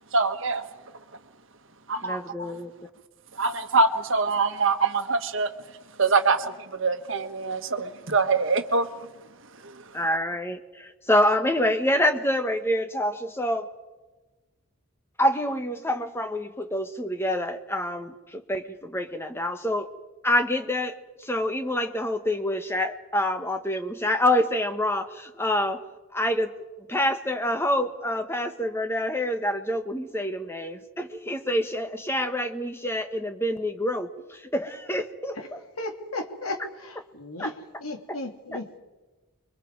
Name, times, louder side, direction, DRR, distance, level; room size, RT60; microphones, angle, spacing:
voice 1, 0.1-0.7 1.9-2.5 3.3-5.5 6.0-9.1 9.6-9.8, right 4 dB, 60° right, 8 dB, 1.5 m, -24 dB
voice 2, 2.0-2.7 9.9-13.7 15.2-19.9 20.2-25.8 26.1-26.5 26.9-35.6 37.4-37.5 38.1-38.2 38.5-38.6, left 1 dB, 10° left, 7 dB, 1.4 m, -27 dB
voice 3, 35.8-36.6 36.8-37.5 37.8-38.8, left 2 dB, 80° left, 4 dB, 2.7 m, -34 dB
30.0 x 23.5 x 4.8 m, 1.2 s
head